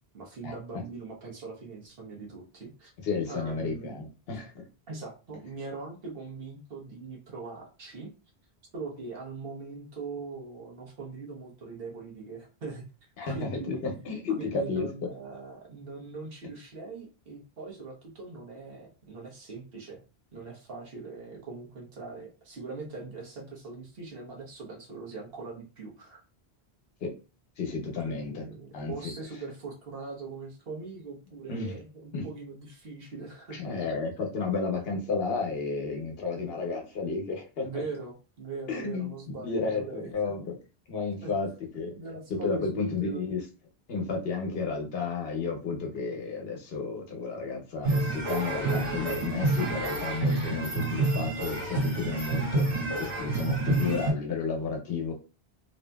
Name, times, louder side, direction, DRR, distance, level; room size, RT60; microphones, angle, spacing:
voice 1, 0.1-2.9 3.3-3.9 4.9-8.1 8.7-12.8 13.2-13.8 14.4-20.0 20.3-26.2 28.1-33.8 37.6-40.1 41.2-41.3 42.0-43.2 53.6-54.0, right 4 dB, 65° right, 1.1 m, -41 dB
voice 2, 3.0-4.6 13.2-14.9 27.0-27.1 27.6-28.4 28.7-29.1 31.5-31.8 32.1-32.3 33.5-37.7 38.7-40.6 40.9-41.5 41.7-41.9 42.4-43.4 43.9-55.1, left 4 dB, 70° left, 0.9 m, -32 dB
sound 1, 47.8-54.1, right 2 dB, 85° right, 1.7 m, -28 dB
2.7 x 2.6 x 2.2 m
omnidirectional pair, 1.1 m